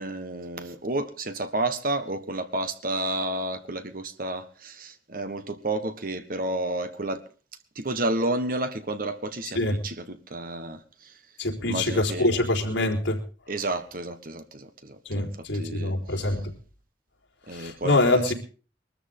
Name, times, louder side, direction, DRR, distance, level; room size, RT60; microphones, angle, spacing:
voice 1, 0.0-7.2 7.7-11.1 11.6-12.4 13.5-16.4 17.5-18.3, right 2 dB, 45° right, 1.4 m, -31 dB
voice 2, 11.4-13.2 15.1-16.5 17.5-18.3, left 2 dB, 75° left, 4.3 m, -25 dB
22.0 x 13.5 x 3.8 m
head